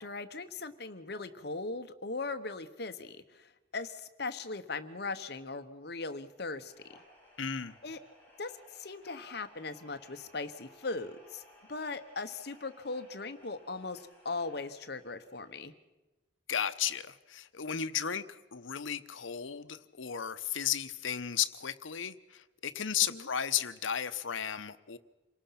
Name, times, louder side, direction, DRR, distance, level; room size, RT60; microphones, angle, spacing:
voice 1, 0.0-6.7 7.8-8.0 8.4-11.4 11.7-15.7 23.1-23.3, left 3 dB, 55° left, 10 dB, 1.1 m, -39 dB
sound 1, 6.6-15.6, left 1 dB, 10° left, 7.7 m, -59 dB
voice 2, 7.4-7.8 16.5-25.0, left 9 dB, 85° left, 12 dB, 0.9 m, -34 dB
27.5 x 18.5 x 5.9 m, 1.1 s
head